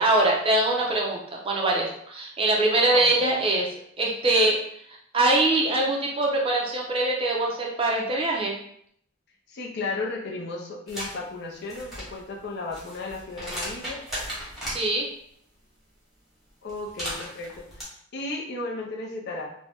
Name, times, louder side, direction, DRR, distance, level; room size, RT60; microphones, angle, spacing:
voice 1, 0.0-3.7 4.0-4.6 5.1-8.5 14.7-15.1, right 2 dB, 25° right, -1 dB, 0.5 m, -23 dB
voice 2, 2.9-3.4 9.5-14.0 16.6-19.5, left 3 dB, 50° left, 0 dB, 0.5 m, -34 dB
sound 1, 10.9-11.1 11.6-14.8 16.7-17.8, equal, ahead, 0.9 m, -36 dB
2.6 x 2.1 x 3.4 m, 0.69 s
head